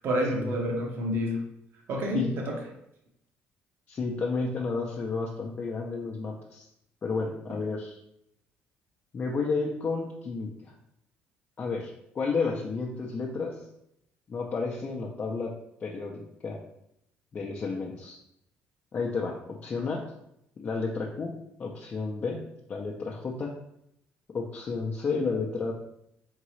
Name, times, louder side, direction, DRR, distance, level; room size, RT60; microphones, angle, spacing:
voice 1, 0.0-1.4 1.9-2.6, equal, 60° right, 0 dB, 1.0 m, -28 dB
voice 2, 3.9-6.6 7.0-8.0 9.1-10.7 11.6-13.6 14.3-15.5 15.8-16.6 17.3-18.2 18.9-20.0 20.6-21.3 21.6-22.4 22.7-23.5 24.3-25.7, left 4 dB, 35° left, -2 dB, 0.6 m, -31 dB
3.8 x 3.6 x 3.1 m, 0.78 s
cardioid pair, 110°, 4 cm